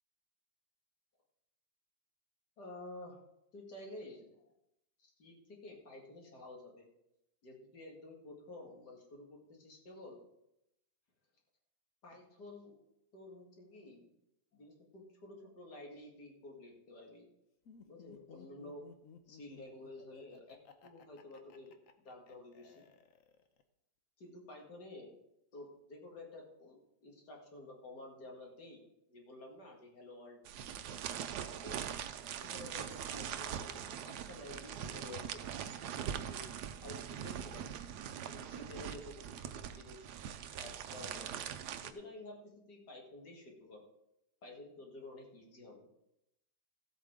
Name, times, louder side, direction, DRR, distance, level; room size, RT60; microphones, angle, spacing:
voice 1, 2.6-3.2 3.5-4.5 5.0-6.9 7.4-10.2 12.0-12.8 13.1-14.1 14.5-17.3 17.9-18.8 19.3-20.6 20.8-21.8 22.0-22.8 24.2-25.2 25.5-28.8 29.1-31.8 32.4-35.4 36.3-36.5 36.8-37.8 38.3-40.1 40.5-41.5 41.8-43.8 44.4-45.9, left 2 dB, 80° left, -1 dB, 2.7 m, -51 dB
Laughter, 17.7-23.6, left 6 dB, 60° left, 1.2 m, -58 dB
sound 1, 30.4-41.9, right 9 dB, 85° right, 1.2 m, -42 dB
15.0 x 8.2 x 3.7 m, 0.86 s
omnidirectional pair, 1.7 m